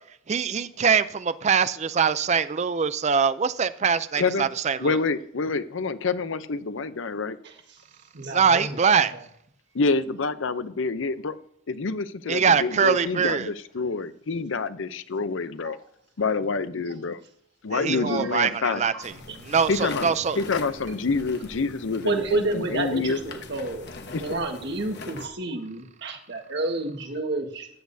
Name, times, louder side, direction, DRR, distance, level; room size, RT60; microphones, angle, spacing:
voice 1, 0.3-5.0 8.3-9.1 12.3-13.5 17.7-20.4, right 6 dB, 35° right, 0.4 m, -23 dB
voice 2, 4.8-7.4 9.7-11.4 11.7-15.8 16.2-17.2 17.6-18.8 19.7-20.1 20.4-23.2 24.1-24.2, left 4 dB, 75° left, 0.6 m, -27 dB
voice 3, 8.1-9.0 15.6-15.7 18.1-18.3 18.9-19.0 22.0-23.9 24.2-27.7, right 2 dB, 60° right, 1.6 m, -29 dB
sound 1, 19.0-25.3, left 3 dB, 55° left, 1.2 m, -41 dB
14.5 x 10.5 x 2.7 m
head